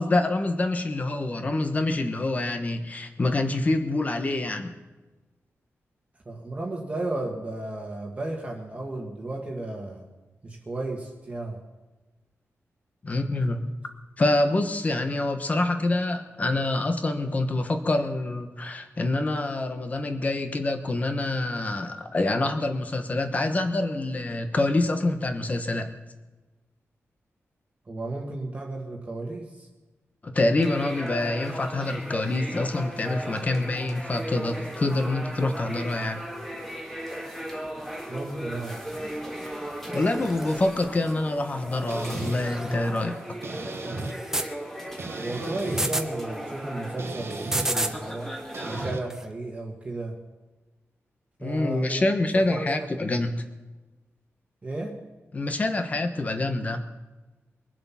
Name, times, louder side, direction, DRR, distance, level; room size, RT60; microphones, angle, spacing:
voice 1, 0.0-4.8 13.0-13.7 14.2-25.9 30.2-36.2 39.9-43.2 51.4-53.3 55.3-56.8, left 2 dB, 30° left, 7 dB, 1.2 m, -26 dB
voice 2, 6.2-10.1 10.4-11.6 27.9-29.7 38.1-38.8 45.2-48.3 48.6-50.2 51.4-52.0 52.3-52.9 54.6-55.0, right 2 dB, 25° right, 0 dB, 1.6 m, -33 dB
sound 1, 30.6-48.9, equal, 5° left, 2.0 m, -37 dB
sound 2, 39.9-40.7 41.9-42.8 44.0-44.5 45.6-46.1 47.3-48.0 49.1-49.2, right 1 dB, 10° right, 0.8 m, -31 dB
sound 3, 41.9-42.4 43.4-44.1 45.0-45.9 47.0-47.7 48.5-49.0, right 3 dB, 55° right, 1.4 m, -35 dB
23.0 x 7.8 x 5.8 m, 1.2 s
wide cardioid pair, 155°, 5 cm